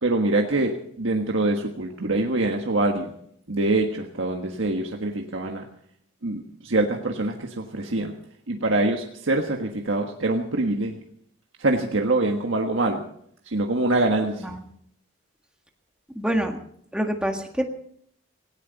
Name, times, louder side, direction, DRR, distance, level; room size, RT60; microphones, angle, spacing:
voice 1, 0.0-3.1 3.5-5.7 6.2-8.1 8.5-11.0 11.6-13.0 13.4-14.4, right 2 dB, 75° right, 2 dB, 1.5 m, -24 dB
voice 2, 16.1-16.6 16.9-17.7, right 1 dB, 5° right, 3 dB, 1.7 m, -26 dB
18.0 x 17.0 x 4.1 m, 0.67 s
head